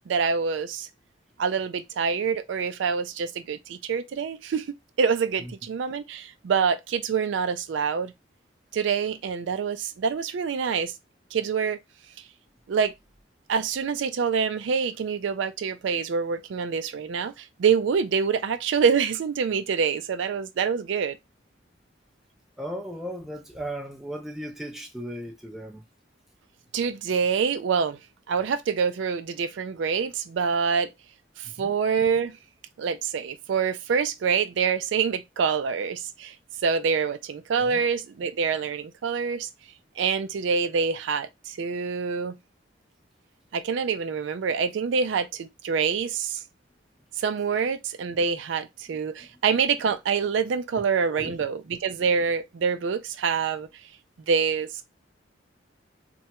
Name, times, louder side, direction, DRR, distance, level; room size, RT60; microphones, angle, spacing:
voice 1, 0.1-0.9 1.4-4.7 5.0-8.1 8.7-10.9 11.3-11.8 12.7-12.9 13.5-21.2 26.7-28.0 28.3-30.9 31.4-32.4 32.8-36.3 36.6-39.5 40.0-42.4 43.5-46.4 47.2-53.7 54.3-54.7, right 6 dB, 75° right, 0.3 m, -26 dB
voice 2, 22.6-25.8 31.4-31.7 37.7-37.8 48.9-49.0 51.1-51.4, equal, ahead, 0.5 m, -36 dB
3.3 x 2.2 x 2.9 m
head